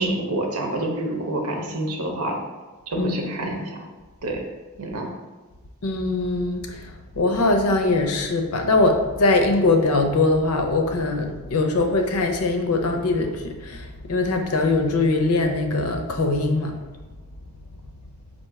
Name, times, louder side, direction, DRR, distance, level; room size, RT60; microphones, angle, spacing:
voice 1, 0.0-2.4 2.9-3.9 4.2-4.4 4.8-5.1, right 1 dB, 85° right, 2 dB, 0.8 m, -27 dB
voice 2, 2.9-3.6 5.8-6.9 7.2-16.8, left 2 dB, 80° left, 5 dB, 0.6 m, -22 dB
4.2 x 2.7 x 4.6 m, 1.2 s
head